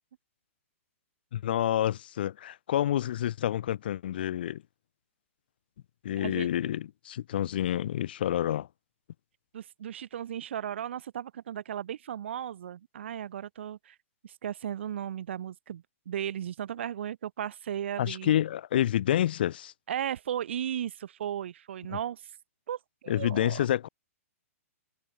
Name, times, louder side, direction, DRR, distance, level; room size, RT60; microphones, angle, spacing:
voice 1, 1.3-4.6 6.0-8.7 18.0-19.7 23.1-23.9, left 11 dB, 40° left, 0.4 m, -28 dB
voice 2, 6.2-6.5 9.5-14.0 14.2-18.4 19.9-22.3 22.7-23.7, right 10 dB, 50° right, 0.8 m, -36 dB
hypercardioid pair, 175°, 8 cm